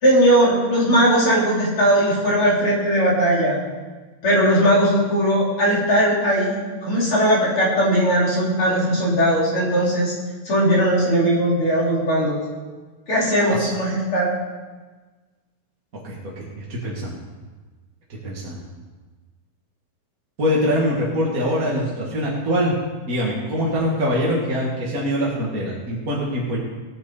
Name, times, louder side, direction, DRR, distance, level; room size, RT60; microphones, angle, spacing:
voice 1, 0.0-3.6 4.2-10.1 10.4-12.4 13.1-14.3, equal, 40° left, -6 dB, 4.4 m, -19 dB
voice 2, 16.0-17.2 18.2-18.7 20.4-22.7 23.0-26.6, equal, 30° right, -5 dB, 1.9 m, -23 dB
18.5 x 9.5 x 4.1 m, 1.3 s
omnidirectional pair, 3.9 m